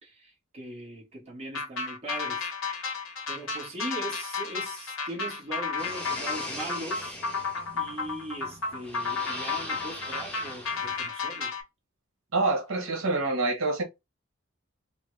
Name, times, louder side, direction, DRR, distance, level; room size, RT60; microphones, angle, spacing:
voice 1, 0.0-2.5 3.3-7.2 7.7-11.5, right 1 dB, 30° right, 1.4 m, -40 dB
sound 1, 1.5-11.6, left 4 dB, 85° left, 0.8 m, -33 dB
sound 2, 5.8-11.1, equal, 5° left, 0.9 m, -41 dB
voice 2, 12.3-13.8, right 3 dB, 85° right, 0.9 m, -26 dB
3.2 x 2.1 x 3.1 m
head